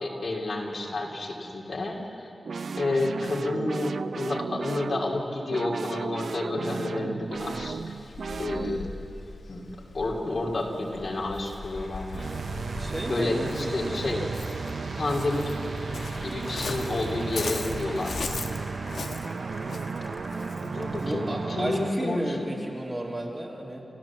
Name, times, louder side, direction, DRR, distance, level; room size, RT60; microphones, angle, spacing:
voice 1, 0.0-2.3 2.8-7.9 8.4-8.9 9.5-9.6 9.9-12.3 13.1-14.3 15.0-15.5 16.2-18.2 20.6-22.6, left 2 dB, 55° left, -1 dB, 2.9 m, -30 dB
sound 1, 2.4-9.0 12.1-21.9, right 4 dB, 75° right, 0.5 m, -34 dB
Waves surf, 7.3-21.2, left 4 dB, 75° left, 1.3 m, -40 dB
Applause, 10.4-22.8, equal, 5° right, 2.5 m, -45 dB
voice 2, 12.8-14.1 21.0-23.8, right 1 dB, 25° right, -2 dB, 3.0 m, -33 dB
30.0 x 14.5 x 7.4 m, 2.8 s
wide cardioid pair, 105°, 0 cm